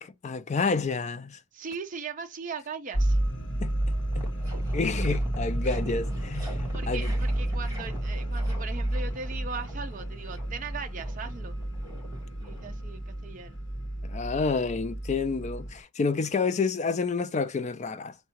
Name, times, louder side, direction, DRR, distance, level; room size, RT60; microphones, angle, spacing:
voice 1, 0.0-1.4 3.6-4.3 4.7-6.6 6.9-7.1 14.0-18.1, left 4 dB, 30° left, 0.3 m, -29 dB
voice 2, 1.5-3.2 6.7-11.6 12.4-13.6, right 5 dB, 35° right, 0.4 m, -39 dB
sound 1, 2.9-15.8, right 1 dB, 55° left, 1.0 m, -31 dB
sound 2, 3.4-3.5 3.8-13.2, equal, 15° right, 1.1 m, -45 dB
4.6 x 2.2 x 2.8 m
head